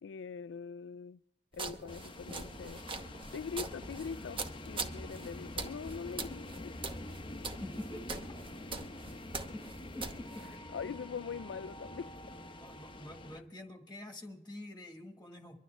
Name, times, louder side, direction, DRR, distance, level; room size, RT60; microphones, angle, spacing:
voice 1, 0.0-1.2 1.5-2.8 3.3-6.8 10.7-12.1, left 6 dB, 90° left, 0.4 m, -42 dB
sound 1, 1.5-10.6, right 4 dB, 30° right, 1.0 m, -43 dB
sound 2, 1.9-13.4, left 1 dB, 30° left, 0.8 m, -46 dB
voice 2, 7.6-8.2 9.5-9.6 9.9-10.7 12.6-15.6, left 1 dB, 10° left, 1.5 m, -46 dB
24.5 x 12.0 x 3.3 m
head